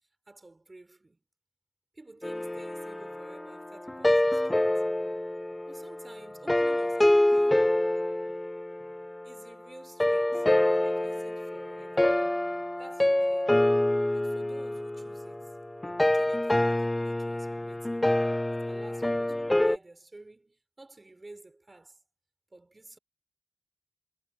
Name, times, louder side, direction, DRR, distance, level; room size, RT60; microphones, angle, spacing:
voice 1, 0.3-1.2 1.9-4.9 5.7-7.8 9.2-12.5 12.8-13.5 14.1-15.6 16.0-18.1 18.5-22.0 22.5-23.0, right 2 dB, 45° right, 6.2 m, -52 dB
sound 1, 2.2-9.4 10.0-19.8, left 1 dB, 25° left, 0.7 m, -27 dB
cardioid pair, 45°, 0 cm